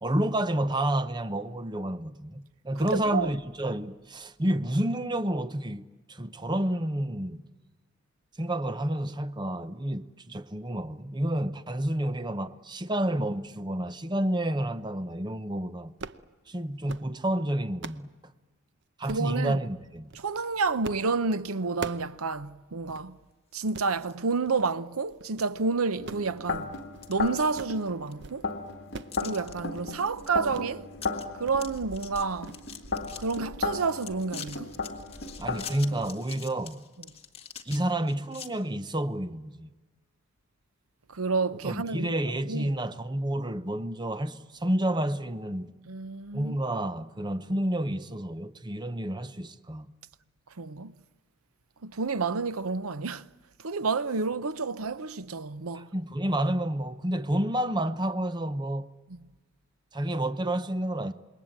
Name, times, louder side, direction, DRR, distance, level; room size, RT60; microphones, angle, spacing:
voice 1, 0.0-7.4 8.4-15.9 16.5-18.1 19.0-20.1 35.4-36.8 37.6-39.7 41.6-45.7 46.3-49.9 55.7-58.9 59.9-61.1, right 1 dB, 20° right, 0.8 m, -30 dB
voice 2, 2.9-3.3 19.1-19.6 20.2-23.2 23.5-26.7 27.1-28.5 29.2-30.9 31.4-32.6 33.2-34.7 41.1-42.2 42.5-42.7 45.9-46.6 50.6-50.9 51.8-53.3 53.6-55.9, right 4 dB, 85° right, 0.8 m, -29 dB
sound 1, 15.9-16.3 16.7-17.1 17.5-18.1 19.1-19.3 20.0-20.3 20.8-21.1 21.4-22.1 22.5-22.6 22.9-23.1 23.6-23.9 24.4-24.7 25.1-25.5 25.9-27.1 27.4-27.8 28.1-28.4 28.7-29.2 29.5-29.9 30.5-30.7 31.1-31.6 31.9-32.0 32.4-32.7 33.4-33.6 33.9-34.1 34.5-34.6, right 4 dB, 55° right, 0.8 m, -43 dB
sound 2, 23.6-24.1 24.6-24.7 25.4-25.5 25.9-26.4 26.8-27.8 28.1-28.2 29.1-29.5 29.9-30.3 30.6-30.7 30.9-31.2 31.5-33.4 33.8-38.5, left 8 dB, 25° left, 1.9 m, -45 dB
sound 3, 25.9-36.1, left 4 dB, 55° left, 1.7 m, -36 dB
27.0 x 22.0 x 8.9 m
head